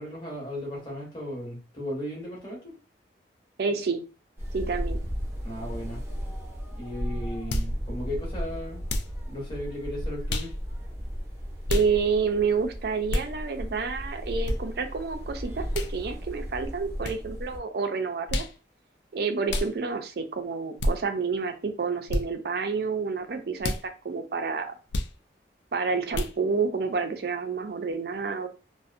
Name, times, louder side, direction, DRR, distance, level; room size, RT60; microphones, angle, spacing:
voice 1, 0.0-2.7 5.4-6.0 6.7-8.9 9.3-10.5, equal, 25° left, -3 dB, 1.0 m, -36 dB
voice 2, 3.6-4.0 4.5-5.0 11.7-18.4 19.1-24.7 25.7-28.5, right 5 dB, 60° right, 6 dB, 0.4 m, -29 dB
sound 1, 4.4-17.6, equal, 15° right, 0.7 m, -35 dB
sound 2, 7.5-7.7 8.9-9.2 10.3-10.5 11.7-11.9 13.1-13.3 14.4-14.6 15.7-15.9 17.0-17.2 18.3-18.5 19.5-19.7 20.8-21.0 22.1-22.2 23.6-23.8 24.9-25.1 26.1-26.3, left 1 dB, 75° left, 0.3 m, -28 dB
2.5 x 2.0 x 2.4 m, 0.34 s
head